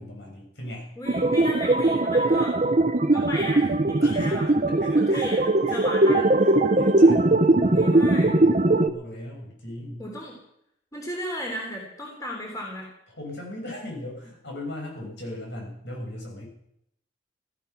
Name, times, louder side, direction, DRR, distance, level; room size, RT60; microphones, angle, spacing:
voice 1, 0.0-0.9 4.0-5.3 5.7-5.9 6.4-8.6 8.8-10.0 13.1-16.5, left 1 dB, 65° left, 0 dB, 6.9 m, -38 dB
voice 2, 1.0-2.6 3.1-5.4 5.7-6.4 7.7-8.3 10.0-10.4 10.9-12.9, equal, 20° left, -1 dB, 3.5 m, -35 dB
sound 1, 1.1-8.9, right 2 dB, 40° right, 0.9 m, -20 dB
16.0 x 14.0 x 6.0 m, 0.77 s
head